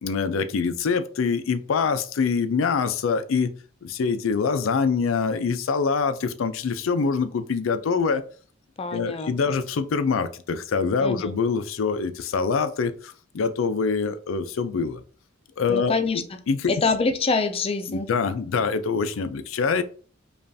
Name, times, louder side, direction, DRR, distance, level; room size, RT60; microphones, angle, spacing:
voice 1, 0.0-3.5 3.8-8.2 8.9-15.0 15.6-16.7 17.9-19.8, left 5 dB, 90° left, 0.4 m, -25 dB
voice 2, 8.8-9.6 11.0-11.3 15.7-16.2 16.7-18.1, left 4 dB, 30° left, 0.4 m, -25 dB
5.2 x 2.4 x 2.6 m
head